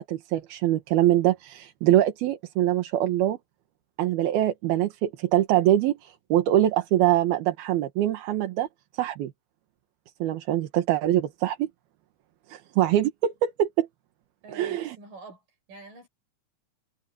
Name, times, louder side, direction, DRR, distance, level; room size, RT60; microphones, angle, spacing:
voice 1, 0.0-3.4 4.0-8.7 8.9-9.3 10.2-11.7 12.5-13.9 14.5-15.0, right 13 dB, 85° right, 3.3 m, -24 dB
voice 2, 14.4-15.4 15.7-16.1, right 4 dB, 60° right, 9.0 m, -45 dB
omnidirectional pair, 4.3 m